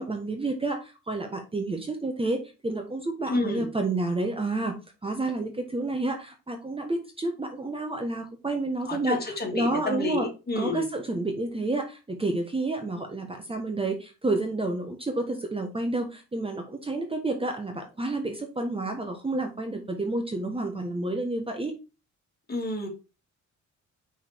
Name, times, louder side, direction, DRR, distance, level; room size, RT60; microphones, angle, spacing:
voice 1, 0.0-4.8 5.0-10.3 10.6-21.7, right 2 dB, 20° right, 4 dB, 1.3 m, -30 dB
voice 2, 3.3-3.7 8.8-10.8 22.5-22.9, left 2 dB, 30° left, 1 dB, 2.7 m, -30 dB
5.5 x 4.8 x 4.5 m, 0.30 s
cardioid pair, 90°, 30 cm